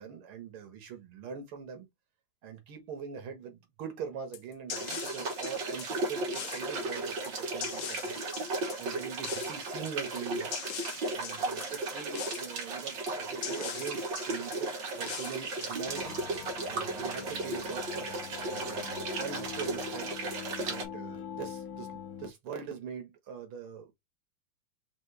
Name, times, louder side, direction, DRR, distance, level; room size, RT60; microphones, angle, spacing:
voice 1, 0.0-1.9 2.4-8.2 8.5-10.5 11.1-16.2 16.6-20.1 20.6-21.9 22.2-23.9, right 7 dB, 80° right, 2.2 m, -42 dB
sound 1, 4.3-16.5, left 10 dB, 70° left, 1.2 m, -43 dB
sound 2, 4.7-20.9, right 3 dB, 60° right, 2.0 m, -35 dB
sound 3, 15.9-22.3, left 8 dB, 85° left, 0.8 m, -43 dB
5.3 x 2.7 x 3.2 m
omnidirectional pair, 2.3 m